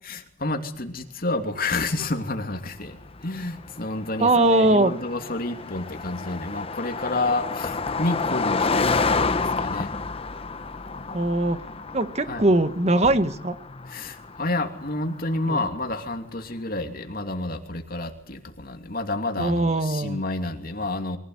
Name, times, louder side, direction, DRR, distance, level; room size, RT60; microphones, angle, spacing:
voice 1, 0.0-3.0 3.2-9.9 12.3-12.5 13.9-21.2, left 2 dB, 45° left, 2.9 m, -29 dB
Car passing by, 2.3-16.0, left 4 dB, 30° left, 0.9 m, -30 dB
voice 2, 4.2-4.9 11.1-11.6 11.9-13.5 15.5-15.6 19.4-20.2, right 2 dB, 35° right, 1.5 m, -21 dB
23.5 x 16.5 x 9.7 m
head